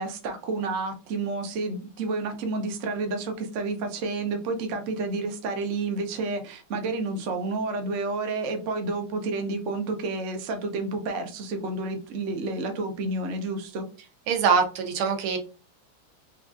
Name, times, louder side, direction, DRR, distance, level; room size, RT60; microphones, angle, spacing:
voice 1, 0.0-13.8, right 3 dB, 70° right, 4 dB, 0.7 m, -30 dB
voice 2, 14.3-15.4, right 6 dB, 85° right, 4 dB, 1.7 m, -23 dB
4.7 x 2.4 x 2.5 m, 0.34 s
omnidirectional pair, 2.3 m